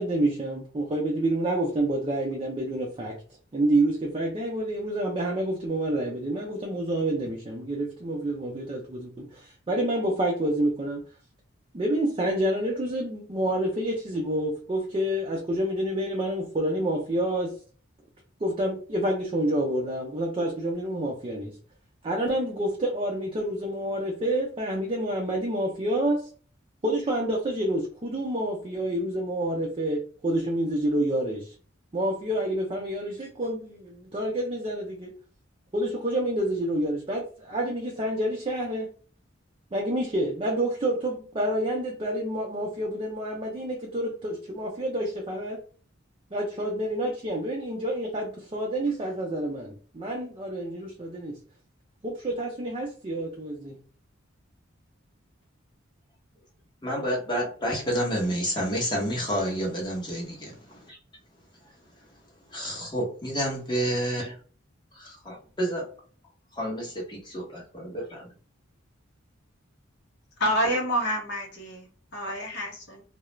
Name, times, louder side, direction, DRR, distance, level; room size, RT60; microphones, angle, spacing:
voice 1, 0.0-3.2 3.5-11.0 11.7-17.5 18.4-21.5 22.0-26.2 26.8-31.5 31.9-35.1 35.7-38.9 39.7-45.6 46.3-51.4 52.0-53.8, right 1 dB, 25° right, 0 dB, 0.5 m, -28 dB
voice 2, 56.8-61.0 62.5-64.3 64.9-65.9 66.6-68.3, equal, 25° left, -3 dB, 0.9 m, -29 dB
voice 3, 70.4-73.0, equal, 60° left, -1 dB, 0.8 m, -28 dB
2.3 x 2.0 x 3.0 m, 0.40 s
head